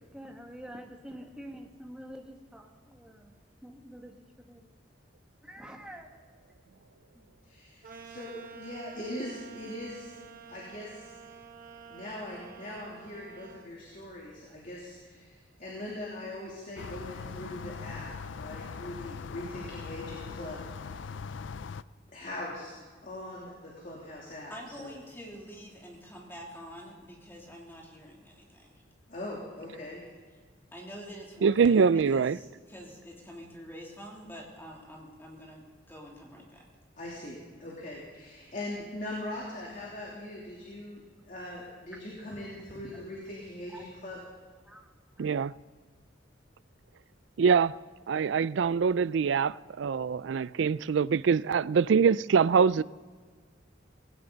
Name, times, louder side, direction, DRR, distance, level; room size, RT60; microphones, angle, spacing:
voice 1, 0.1-3.3 3.6-4.7 5.4-6.1 7.1-7.3 41.9-42.0 42.3-42.4 42.7-43.1 43.7-43.9 44.6-44.9 45.2-45.3, equal, 5° right, 1.8 m, -47 dB
voice 2, 7.4-10.1 10.5-11.1 11.9-18.1 18.3-21.0 22.1-22.7 23.0-24.9 29.1-30.0 37.0-44.2, left 1 dB, 45° left, 3.1 m, -41 dB
sound 1, 7.8-13.7, right 5 dB, 45° right, 1.4 m, -49 dB
sound 2, 16.8-21.8, left 5 dB, 75° left, 0.4 m, -41 dB
voice 3, 24.5-28.8 30.7-36.6, equal, 10° left, 3.0 m, -47 dB
voice 4, 31.4-32.4 45.2-45.5 47.4-47.8 48.1-52.8, right 6 dB, 70° right, 0.4 m, -24 dB
18.5 x 17.5 x 4.0 m
head